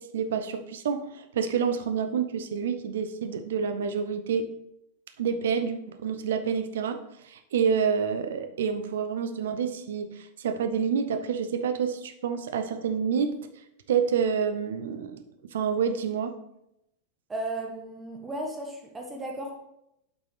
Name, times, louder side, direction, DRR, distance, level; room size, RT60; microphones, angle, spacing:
voice 1, 0.0-4.5 5.2-7.0 7.2-13.3 13.9-15.2 15.5-16.3, right 6 dB, 60° right, 9 dB, 0.6 m, -28 dB
voice 2, 17.3-19.5, right 1 dB, 15° right, 1 dB, 1.5 m, -35 dB
7.9 x 5.7 x 3.3 m, 0.83 s
figure-of-eight pair, 90°, 0 cm